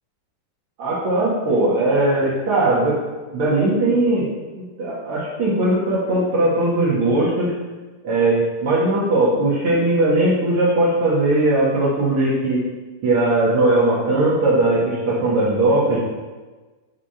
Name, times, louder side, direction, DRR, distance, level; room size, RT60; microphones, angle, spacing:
voice 1, 0.8-3.0 3.3-4.3 4.6-7.5 8.0-12.6 13.0-16.0, right 2 dB, 65° right, -7 dB, 1.3 m, -19 dB
8.4 x 3.5 x 5.6 m, 1.3 s
omnidirectional pair, 4.6 m